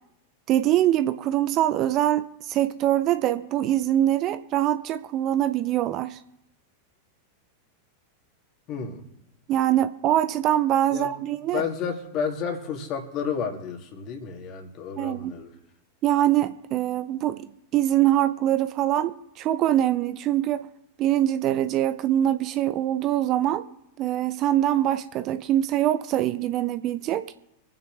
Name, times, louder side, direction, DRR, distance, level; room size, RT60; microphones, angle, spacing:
voice 1, 0.5-6.2 9.5-11.6 15.0-15.4 16.0-20.7 21.0-23.6 24.0-27.3, right 12 dB, 35° right, 0.6 m, -23 dB
voice 2, 8.7-9.0 10.9-11.1 11.4-15.5, left 6 dB, 35° left, 2.6 m, -31 dB
25.5 x 9.3 x 3.4 m
figure-of-eight pair, 90°, 0 cm